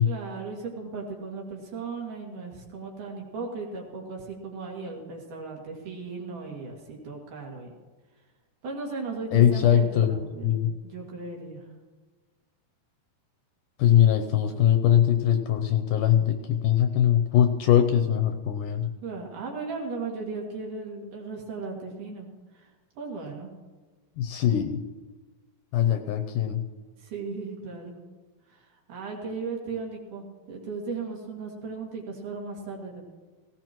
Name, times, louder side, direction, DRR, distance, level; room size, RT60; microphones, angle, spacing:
voice 1, 0.0-7.7 8.6-11.6 19.0-22.3 22.5-22.7 23.0-23.5 27.0-28.0 28.5-33.0, right 4 dB, 60° right, -1 dB, 3.7 m, -36 dB
voice 2, 9.3-10.7 13.8-18.9 24.2-24.8 25.7-26.6, left 10 dB, 75° left, 6 dB, 2.0 m, -22 dB
18.0 x 16.5 x 3.0 m, 1.3 s
omnidirectional pair, 4.2 m